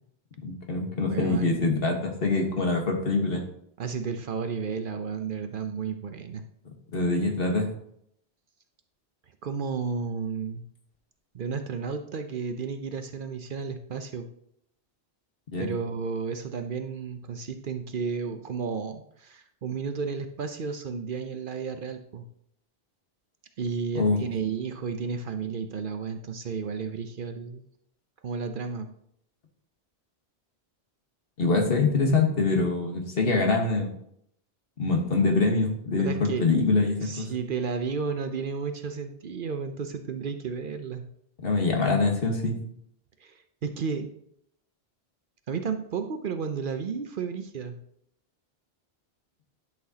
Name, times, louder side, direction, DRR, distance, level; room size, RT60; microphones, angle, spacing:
voice 1, 0.4-3.4 6.9-7.7 15.5-15.7 23.9-24.2 31.4-33.9 34.8-37.3 41.4-42.6, left 3 dB, 60° left, 2 dB, 1.5 m, -24 dB
voice 2, 1.1-1.6 3.8-6.4 9.4-10.6 11.3-14.3 15.6-22.3 23.6-27.6 28.2-28.9 36.0-36.5 37.0-41.1 43.2-44.1 45.5-47.8, right 5 dB, 55° right, 7 dB, 0.8 m, -32 dB
11.0 x 6.0 x 2.8 m, 0.71 s
omnidirectional pair, 1.1 m